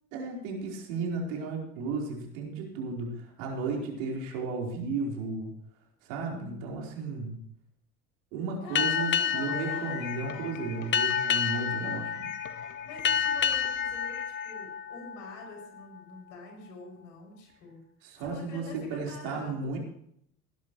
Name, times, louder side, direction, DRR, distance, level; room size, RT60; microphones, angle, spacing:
voice 1, 0.1-5.5 6.0-7.4 8.3-12.3 18.0-19.8, right 4 dB, 75° right, 0 dB, 4.3 m, -34 dB
voice 2, 8.6-10.2 12.8-17.8 18.2-19.8, left 3 dB, 70° left, 2 dB, 6.5 m, -46 dB
Boat Water vehicle, 8.8-15.8, left 7 dB, 30° left, 0.8 m, -30 dB
sound 1, 9.5-14.5, left 9 dB, 50° left, 1.5 m, -46 dB
19.0 x 11.5 x 3.1 m, 0.72 s
hypercardioid pair, 75°, 40 cm